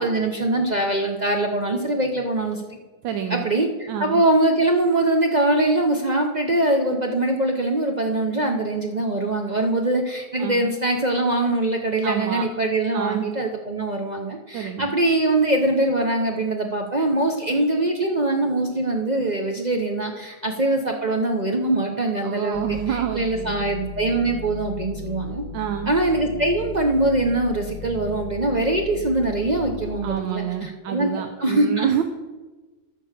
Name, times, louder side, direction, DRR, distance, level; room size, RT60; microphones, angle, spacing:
voice 1, 0.0-2.8 3.3-25.4 25.9-31.1 31.4-32.0, right 2 dB, 60° right, 2 dB, 0.4 m, -23 dB
voice 2, 3.0-3.5 3.9-4.2 10.4-10.7 12.0-12.5 12.9-13.3 14.5-14.9 22.2-23.7 25.5-26.0 30.0-32.0, right 10 dB, 80° right, 6 dB, 1.4 m, -28 dB
sound 1, 22.5-30.1, left 7 dB, 60° left, 3.4 m, -37 dB
13.5 x 4.7 x 6.6 m, 1.2 s
omnidirectional pair, 2.0 m